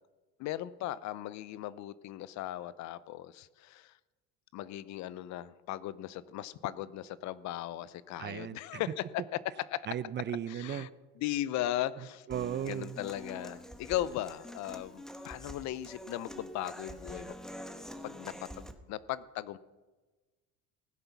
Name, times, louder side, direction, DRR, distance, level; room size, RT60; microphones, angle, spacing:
voice 1, 0.4-3.9 4.5-9.0 9.7-9.9 10.5-10.9 11.2-12.3 12.7-17.3 18.0-19.6, left 13 dB, 55° left, 18 dB, 0.6 m, -37 dB
voice 2, 8.2-8.8 9.9-10.9 12.0-13.0, right 10 dB, 35° right, 17 dB, 0.5 m, -36 dB
Human voice / Acoustic guitar, 12.3-18.7, equal, ahead, 1.0 m, -46 dB
16.5 x 7.9 x 5.9 m, 1.3 s
supercardioid pair, 90°, 34 cm